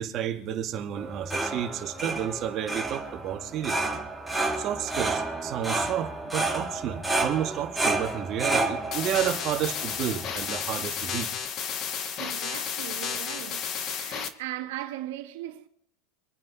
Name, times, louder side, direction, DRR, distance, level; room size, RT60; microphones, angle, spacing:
voice 1, 0.0-4.0 4.6-11.3, right 10 dB, 40° right, 2.2 m, -31 dB
sound 1, 1.0-10.7, right 2 dB, 5° right, 2.0 m, -31 dB
sound 2, 8.9-14.3, left 7 dB, 35° left, 1.4 m, -32 dB
voice 2, 12.1-15.7, right 14 dB, 75° right, 1.7 m, -38 dB
25.5 x 9.4 x 4.2 m
supercardioid pair, 140°, 0 cm